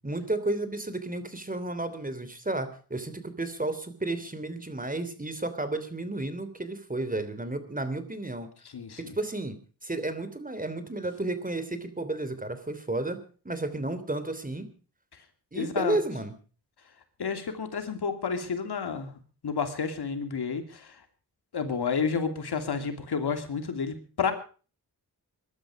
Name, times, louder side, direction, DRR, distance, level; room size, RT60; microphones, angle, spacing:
voice 1, 0.0-8.5 9.0-9.6 9.8-13.2 13.4-14.7 15.5-16.3, right 2 dB, 20° right, 11 dB, 3.2 m, -32 dB
voice 2, 8.7-9.1 15.5-16.0 17.2-21.0 21.5-24.3, left 6 dB, 85° left, 7 dB, 2.8 m, -30 dB
22.0 x 12.0 x 4.9 m, 0.39 s
cardioid pair, 65°, 38 cm